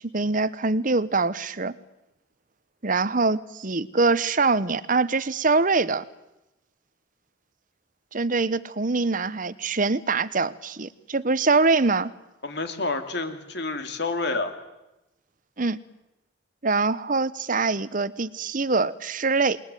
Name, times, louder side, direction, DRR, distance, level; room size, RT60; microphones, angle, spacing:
voice 1, 0.1-1.7 2.8-6.0 8.1-12.1 15.6-15.8 16.6-19.6, right 3 dB, 40° right, 17 dB, 1.0 m, -24 dB
voice 2, 12.4-14.5, left 3 dB, 55° left, 7 dB, 3.0 m, -29 dB
28.5 x 21.0 x 9.3 m, 0.98 s
head